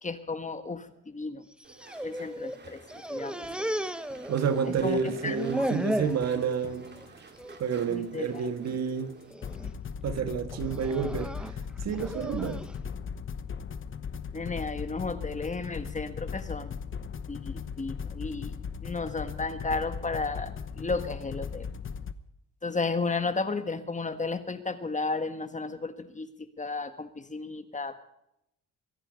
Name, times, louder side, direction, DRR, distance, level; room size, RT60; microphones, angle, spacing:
voice 1, 0.0-1.4 2.0-3.7 4.8-5.4 7.9-8.5 14.3-16.7 17.3-18.5 18.8-21.7 22.6-26.3 26.6-27.9, left 3 dB, 25° left, 9 dB, 1.6 m, -33 dB
sound 1, 1.5-2.6 2.9-4.8 5.1-6.2 6.7-7.0 7.4-7.6 8.4-8.8 9.3-9.7 10.5-12.7, equal, 5° right, 1.1 m, -35 dB
Walk footsteps / Chatter / Squeak, 1.6-9.3, right 4 dB, 35° right, 2.7 m, -49 dB
voice 2, 4.3-6.9 7.6-9.2 10.0-12.6, right 6 dB, 60° right, 9 dB, 1.7 m, -30 dB
sound 2, 6.0-7.2 9.4-22.1, left 6 dB, 40° left, 1.1 m, -38 dB
23.5 x 11.0 x 5.3 m, 0.80 s
cardioid pair, 90°, 30 cm